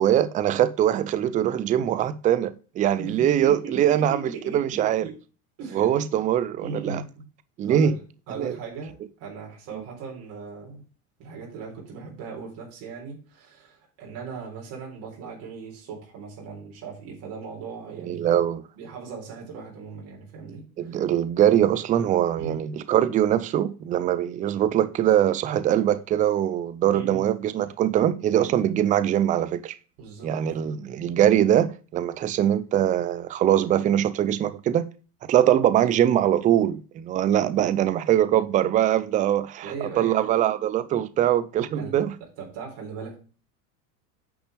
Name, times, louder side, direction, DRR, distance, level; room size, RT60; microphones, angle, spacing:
voice 1, 0.0-5.1 5.7-7.0 7.6-7.9 8.4-8.6 18.0-18.6 20.8-29.7 30.2-34.9 35.3-42.1, right 11 dB, 20° right, 0.4 m, -22 dB
voice 2, 3.0-5.2 5.6-6.0 6.6-7.2 7.7-10.8 11.2-18.4 18.8-20.9 22.4-22.6 26.9-27.3 30.0-30.9 39.6-40.3 41.8-42.0 42.2-43.2, right 5 dB, 55° right, 3.9 m, -38 dB
8.8 x 5.9 x 3.3 m
supercardioid pair, 125°, 45 cm